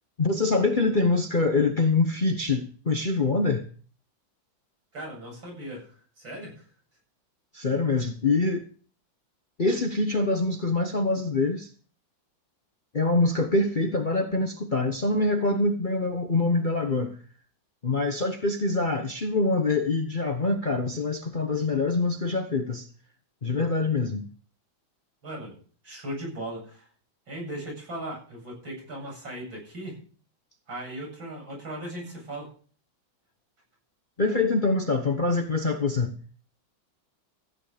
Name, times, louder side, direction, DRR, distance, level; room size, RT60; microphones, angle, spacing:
voice 1, 0.2-3.6 7.5-8.7 9.6-11.7 12.9-17.1 17.8-22.9 23.4-24.2 34.2-36.1, left 3 dB, 35° left, 0.9 m, -25 dB
voice 2, 4.9-6.7 25.2-25.6 25.8-26.9 27.3-30.0 30.7-32.5, right 1 dB, 80° right, 8.8 m, -38 dB
15.0 x 9.6 x 5.1 m
omnidirectional pair, 2.1 m